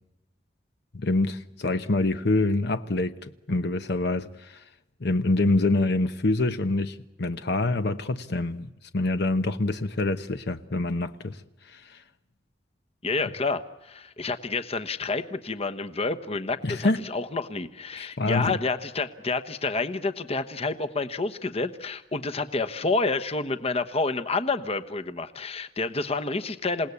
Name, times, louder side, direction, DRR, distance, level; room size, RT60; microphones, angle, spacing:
voice 1, 0.9-4.6 5.0-11.4 11.7-12.0 16.6-17.0 17.9-18.6, left 2 dB, 65° left, 1.0 m, -26 dB
voice 2, 13.0-26.9, left 3 dB, 35° left, 1.1 m, -29 dB
28.0 x 18.0 x 8.4 m
head